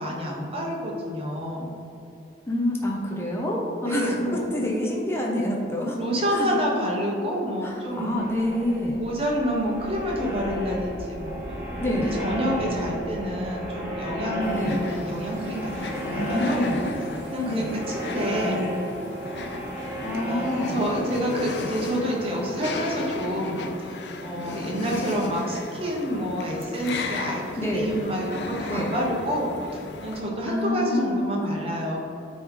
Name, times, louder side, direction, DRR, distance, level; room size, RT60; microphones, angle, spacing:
voice 1, 0.0-1.8 3.8-4.5 6.0-8.3 9.0-16.7 17.3-18.7 20.3-20.4 20.7-32.0, equal, 30° right, -2 dB, 1.0 m, -28 dB
voice 2, 2.5-6.0 6.3-6.6 7.6-9.0 11.8-12.1 14.5-14.8 16.0-16.8 17.5-17.7 20.0-20.9 27.6-27.9 28.7-28.9 30.5-31.6, left 1 dB, 15° left, -2 dB, 0.6 m, -27 dB
sound 1, 7.8-24.4, equal, 10° right, 1.1 m, -33 dB
sound 2, 14.4-30.2, left 3 dB, 75° left, 0.5 m, -36 dB
8.4 x 3.1 x 3.7 m, 2.8 s
head